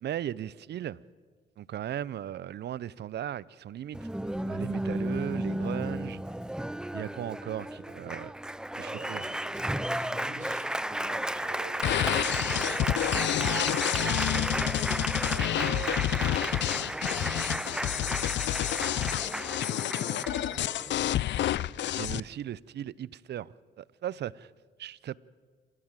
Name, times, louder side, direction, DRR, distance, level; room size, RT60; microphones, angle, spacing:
voice 1, 0.0-1.0 1.6-4.1 4.5-6.2 6.9-8.3 8.8-9.2 14.2-14.5 22.0-24.5 24.8-25.2, right 11 dB, 60° right, 0.6 m, -37 dB
Applause, 3.9-20.9, right 1 dB, 5° right, 0.6 m, -33 dB
voice 2, 8.8-14.4 15.2-21.2, right 2 dB, 40° right, 5.6 m, -50 dB
Wind instrument woodwind instrument, 11.5-16.5, right 9 dB, 75° right, 1.7 m, -42 dB
sound 1, 11.8-22.2, left 13 dB, 65° left, 0.5 m, -29 dB
28.5 x 14.5 x 7.5 m
cardioid pair, 90°, 20 cm